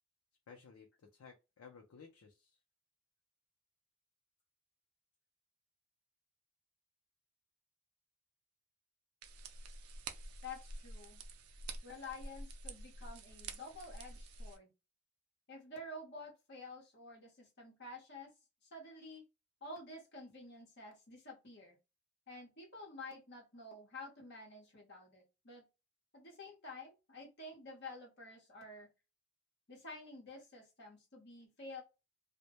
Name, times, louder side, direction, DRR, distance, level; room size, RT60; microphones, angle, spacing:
voice 1, 0.5-2.6, left 5 dB, 80° left, 2 dB, 0.5 m, -57 dB
sound 1, 9.2-14.6, right 3 dB, 80° right, 0.4 m, -48 dB
voice 2, 10.4-11.2 11.8-14.7 15.5-18.3 18.6-19.2 19.6-21.8 22.3-25.6 26.1-28.9 29.7-31.8, left 2 dB, 50° left, 0 dB, 0.9 m, -50 dB
2.1 x 2.1 x 2.8 m, 0.28 s
head